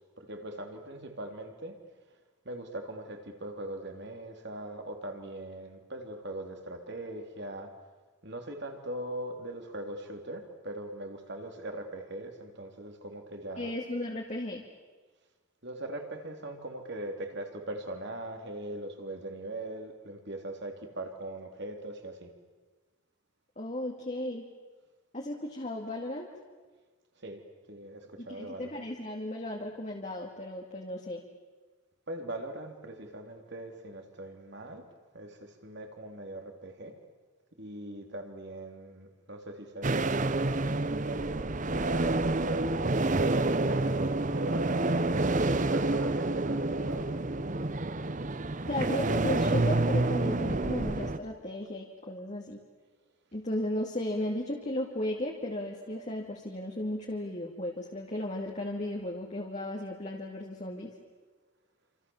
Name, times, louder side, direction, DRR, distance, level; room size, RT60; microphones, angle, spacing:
voice 1, 0.2-1.7 2.5-7.7 8.2-13.8 15.6-22.3 27.2-27.4 27.7-28.8 32.1-34.9 35.1-36.9 37.6-40.6 40.9-42.8 43.2-47.1, right 1 dB, 55° right, 4 dB, 3.5 m, -40 dB
voice 2, 13.6-14.6 23.6-24.4 25.1-26.3 28.2-31.2 48.7-52.6 53.3-60.9, left 1 dB, 35° left, 0 dB, 2.4 m, -35 dB
sound 1, 39.8-51.2, right 2 dB, 35° right, 0.8 m, -28 dB
28.0 x 27.0 x 7.3 m, 1.3 s
head